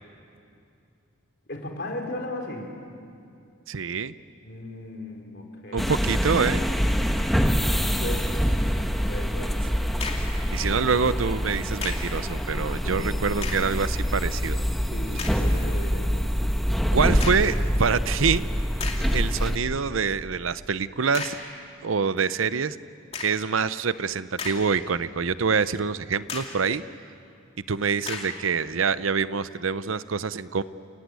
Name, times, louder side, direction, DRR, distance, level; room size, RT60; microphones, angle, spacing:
voice 1, 1.5-2.8 4.4-6.0 7.6-8.5 9.1-9.6 12.7-13.1 14.9-16.1, left 1 dB, 55° left, 2 dB, 3.9 m, -36 dB
voice 2, 3.7-4.1 5.7-6.6 10.5-14.6 15.1-15.2 16.9-18.4 19.1-21.4 21.8-22.8 23.2-26.8 27.7-30.6, right 5 dB, 85° right, 15 dB, 0.7 m, -26 dB
sound 1, 5.8-19.6, equal, ahead, 1.1 m, -25 dB
sound 2, 10.0-10.4 11.8-12.2 13.3-13.8 14.4-14.5 15.2-15.5 17.2-17.6 18.3-18.4 18.8-19.2 21.1-21.5 23.1-23.5 24.1-24.9 25.3-25.4 26.3-26.7 28.0-28.4, left 4 dB, 30° left, 2.7 m, -35 dB
29.5 x 18.0 x 9.5 m, 2.5 s
head